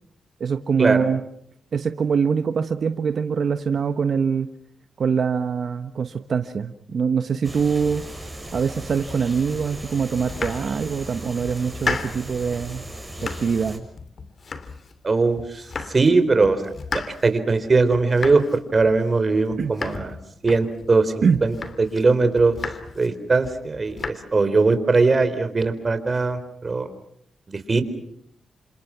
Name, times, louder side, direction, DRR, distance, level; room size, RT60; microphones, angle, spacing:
voice 1, 0.4-1.2 1.7-4.5 5.0-8.0 8.5-12.8 13.2-13.8 19.6-19.8 21.2-21.4, right 6 dB, 60° right, 9 dB, 1.2 m, -23 dB
sound 1, 7.4-13.8, right 1 dB, 10° right, 6.7 m, -37 dB
Domestic sounds home sounds, 10.1-11.1 11.5-12.4 12.7-13.7 14.0-15.1 15.4-16.2 16.4-21.0 21.3-22.0 22.4-23.1 23.4-24.1, left 4 dB, 50° left, 2.9 m, -34 dB
voice 2, 15.0-15.6 15.9-16.6 17.2-18.4 18.7-20.1 20.4-22.6 23.0-26.9 27.5-27.8, right 3 dB, 40° right, 10 dB, 4.0 m, -20 dB
29.0 x 26.5 x 6.0 m, 0.69 s
cardioid pair, 65°, 0 cm